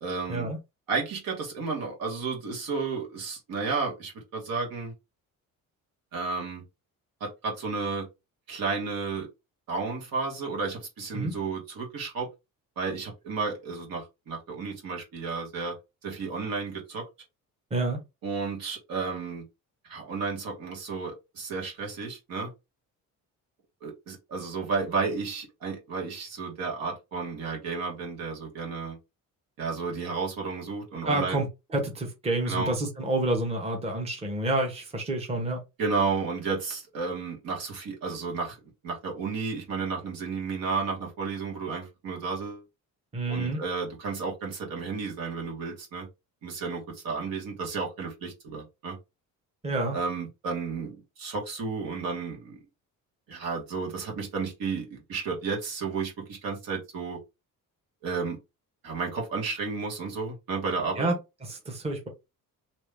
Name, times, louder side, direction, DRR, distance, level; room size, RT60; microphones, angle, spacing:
voice 1, 0.0-0.5 0.9-4.9 6.1-6.6 7.2-8.1 8.5-9.3 9.7-12.3 12.8-15.7 16.0-17.0 18.2-19.4 19.9-22.5 23.8-29.0 29.6-31.4 32.4-32.7 35.8-38.6 38.8-42.6 43.3-46.1 46.4-49.0 49.9-52.6 53.3-57.2 58.0-58.4 58.8-61.1, right 4 dB, 85° right, 1.6 m, -32 dB
voice 2, 31.0-31.5 31.7-35.6 43.1-43.6 49.6-50.0 61.0-62.1, right 2 dB, 20° right, 0.8 m, -28 dB
3.0 x 2.6 x 3.4 m
cardioid pair, 160°, 34 cm